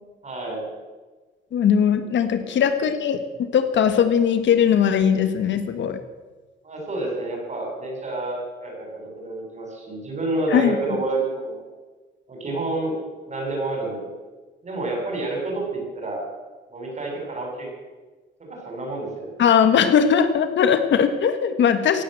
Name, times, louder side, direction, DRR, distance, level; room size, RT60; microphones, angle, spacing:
voice 1, 0.2-0.7 2.4-2.5 6.6-11.6 12.3-12.9 13.3-14.1 14.6-16.2 16.7-17.7 18.4-19.4, right 2 dB, 35° right, 1 dB, 7.3 m, -29 dB
voice 2, 1.5-6.0 10.5-10.8 19.4-22.0, left 7 dB, 70° left, 9 dB, 1.5 m, -19 dB
17.0 x 10.5 x 7.9 m, 1.3 s
cardioid pair, 90°, 20 cm